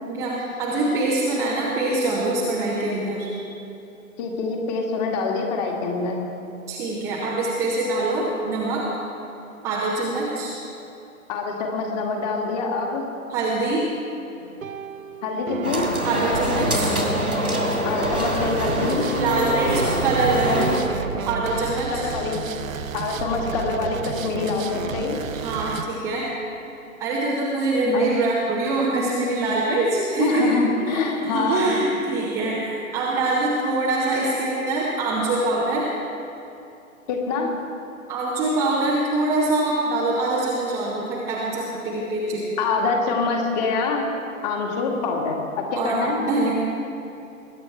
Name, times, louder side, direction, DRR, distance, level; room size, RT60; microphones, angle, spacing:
voice 1, 0.1-3.3 6.7-8.9 9.6-10.6 13.3-13.9 16.0-17.0 19.2-20.7 21.3-22.1 25.3-26.3 27.0-35.9 38.1-42.5 45.8-46.5, right 2 dB, 5° right, -5 dB, 0.6 m, -24 dB
voice 2, 4.2-6.2 11.3-13.1 15.2-15.8 17.8-19.1 21.9-22.5 22.9-25.2 27.9-28.2 30.2-31.7 37.1-37.5 42.6-44.1 44.4-46.2, left 4 dB, 30° left, 1 dB, 2.0 m, -25 dB
sound 1, 14.4-25.8, right 6 dB, 65° right, 0.8 m, -32 dB
sound 2, 15.6-20.8, equal, 90° right, 2.9 m, -24 dB
21.0 x 10.0 x 4.4 m, 2.8 s
figure-of-eight pair, 125°, 43 cm